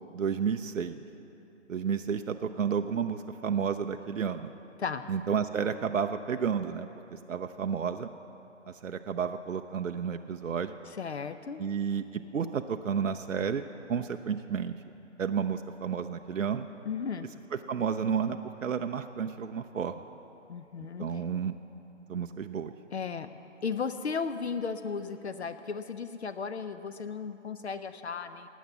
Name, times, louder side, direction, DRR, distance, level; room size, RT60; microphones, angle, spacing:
voice 1, 0.1-1.0 1.7-4.5 5.1-8.1 8.8-10.8 11.6-14.7 15.2-16.7 17.7-20.0 21.0-21.5 22.1-22.7, right 7 dB, 85° right, 6 dB, 0.7 m, -31 dB
voice 2, 10.9-11.6 16.8-17.3 20.5-21.2 22.9-23.3 23.6-28.5, left 5 dB, 60° left, 11 dB, 0.7 m, -35 dB
18.5 x 8.2 x 7.2 m, 3.0 s
hypercardioid pair, 160°, 37 cm